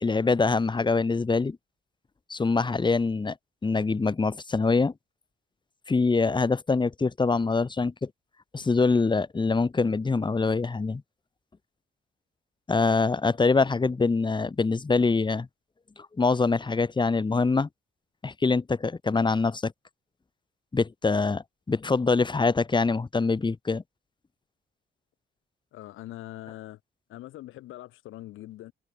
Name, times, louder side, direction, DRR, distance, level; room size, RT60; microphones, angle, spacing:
voice 1, 0.0-1.6 2.3-3.3 3.6-4.9 5.9-8.1 8.5-11.0 12.7-15.5 16.2-17.7 18.2-19.7 20.7-23.8, left 4 dB, 25° left, 1.5 m, -24 dB
voice 2, 25.7-26.8 27.1-28.7, left 15 dB, 90° left, 7.3 m, -42 dB
cardioid pair, 90°, 20 cm